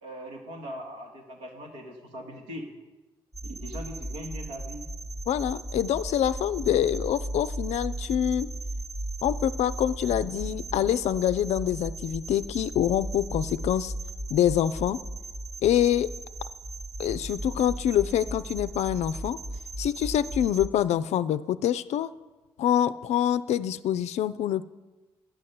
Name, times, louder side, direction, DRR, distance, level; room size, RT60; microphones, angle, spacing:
voice 1, 0.0-2.7 3.4-4.8, equal, 85° right, -1 dB, 1.6 m, -40 dB
sound 1, 3.3-20.7, right 1 dB, 25° right, 0.9 m, -36 dB
voice 2, 5.3-8.5 9.2-13.9 14.3-15.0 15.6-16.1 17.0-19.4 19.8-22.1 22.6-24.6, left 11 dB, 60° left, 15 dB, 0.4 m, -25 dB
9.8 x 6.4 x 7.6 m, 1.2 s
hypercardioid pair, 40°, 13 cm